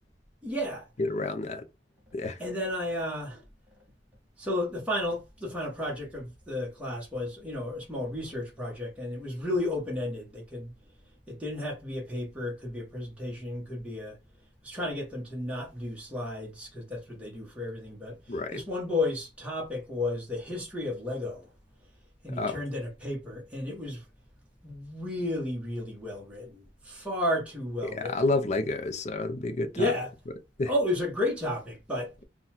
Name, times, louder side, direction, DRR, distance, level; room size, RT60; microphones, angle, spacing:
voice 1, 0.4-0.9 2.4-3.4 4.4-10.7 11.3-14.2 14.6-21.5 22.2-24.0 24.6-28.3 29.7-30.1 30.7-32.1, left 1 dB, 5° right, 1.2 m, -33 dB
voice 2, 1.0-1.6 2.1-2.4 18.3-18.6 22.3-22.6 27.8-29.9 30.6-30.7, left 2 dB, 40° left, 0.6 m, -29 dB
3.9 x 2.3 x 4.3 m
head